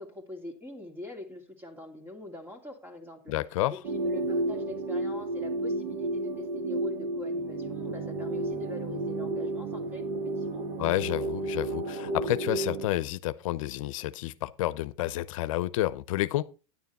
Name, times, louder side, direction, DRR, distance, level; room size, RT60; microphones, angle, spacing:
voice 1, 0.0-3.3 3.7-10.7, left 2 dB, 10° right, 2.5 m, -44 dB
voice 2, 3.3-3.8 10.8-16.4, left 15 dB, 80° left, 0.7 m, -30 dB
sound 1, 3.8-12.9, right 2 dB, 75° right, 2.4 m, -32 dB
9.7 x 9.4 x 4.2 m
supercardioid pair, 140°, 17 cm